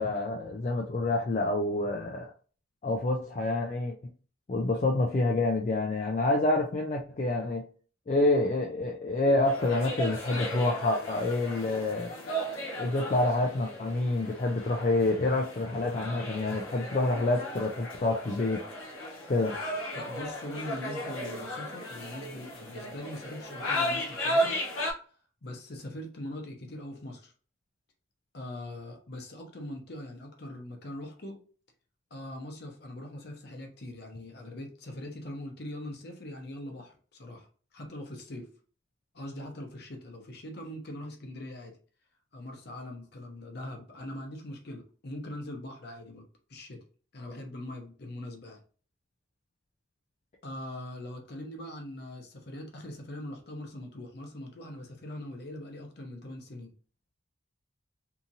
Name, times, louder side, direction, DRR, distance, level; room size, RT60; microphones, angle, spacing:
voice 1, 0.0-2.3 2.8-3.9 4.5-7.7 8.1-12.1 12.8-18.6 19.3-19.6, left 2 dB, 35° left, 0 dB, 0.3 m, -27 dB
sound 1, 9.4-24.9, equal, 85° left, 0.8 m, -35 dB
voice 2, 19.9-24.6 25.4-27.3 28.3-31.4 32.1-38.5 39.1-41.8 42.3-46.2 46.5-46.8 47.1-48.6 50.4-56.7, left 1 dB, 55° left, 3 dB, 0.7 m, -42 dB
2.8 x 2.5 x 2.6 m, 0.40 s
head